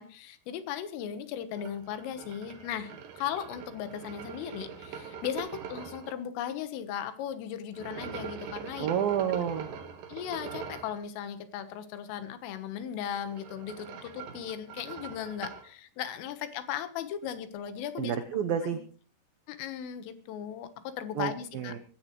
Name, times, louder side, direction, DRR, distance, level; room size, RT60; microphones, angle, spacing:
voice 1, 0.0-8.9 10.1-18.2 18.7-18.8 19.5-21.8, left 9 dB, 85° left, 11 dB, 3.9 m, -37 dB
sound 1, 1.6-6.1 7.7-11.0 13.1-15.7, right 7 dB, 60° right, 2.7 m, -43 dB
voice 2, 8.8-9.7 18.0-18.8 21.2-21.8, right 9 dB, 85° right, 8 dB, 2.1 m, -30 dB
21.0 x 16.0 x 3.2 m, 0.37 s
omnidirectional pair, 5.7 m